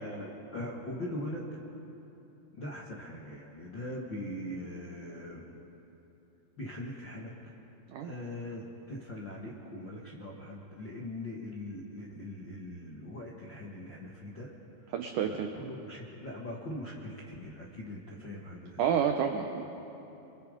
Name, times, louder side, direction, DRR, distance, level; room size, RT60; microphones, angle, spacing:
voice 1, 0.0-1.5 2.5-5.5 6.6-7.5 8.0-14.5 14.8-14.9 15.2-18.9, left 1 dB, 60° left, -3 dB, 1.2 m, -41 dB
voice 2, 14.9-15.5 18.8-19.8, right 8 dB, 85° right, 5 dB, 1.8 m, -29 dB
28.5 x 23.0 x 5.1 m, 3.0 s
omnidirectional pair, 4.9 m